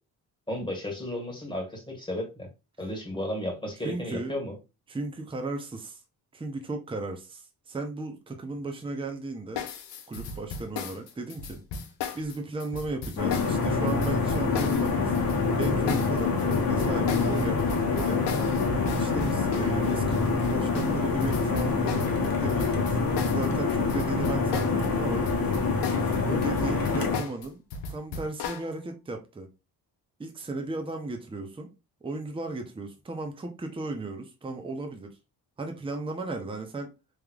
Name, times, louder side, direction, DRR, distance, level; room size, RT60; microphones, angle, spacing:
voice 1, 0.5-2.5 2.8-4.6, left 1 dB, 10° left, 1.8 m, -33 dB
voice 2, 3.8-4.3 4.9-6.0 6.3-9.7 10.1-11.6 12.1-15.1 15.6-25.3 26.3-27.6 27.9-29.5 30.2-31.7 32.0-35.1 35.6-36.9, right 2 dB, 15° right, 0.7 m, -35 dB
sound 1, 9.6-24.9 25.1-28.7, left 5 dB, 75° left, 0.7 m, -36 dB
sound 2, 13.2-27.2, left 4 dB, 55° left, 1.0 m, -26 dB
3.4 x 3.2 x 2.3 m
cardioid pair, 85°, 42 cm